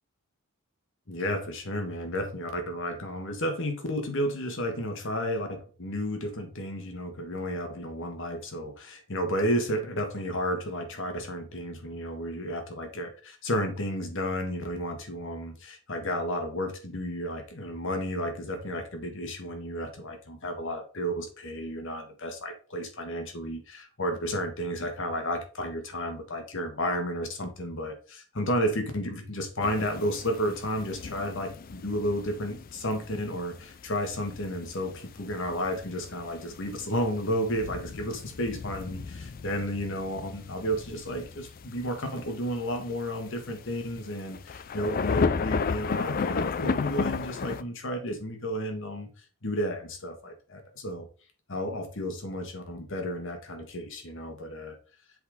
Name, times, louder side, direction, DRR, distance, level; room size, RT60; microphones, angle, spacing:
voice 1, 1.1-49.1 49.4-51.1 51.5-54.8, equal, 60° left, 5 dB, 1.5 m, -32 dB
sound 1, 29.6-47.6, left 5 dB, 40° left, 0.4 m, -34 dB
7.8 x 3.9 x 3.6 m, 0.37 s
head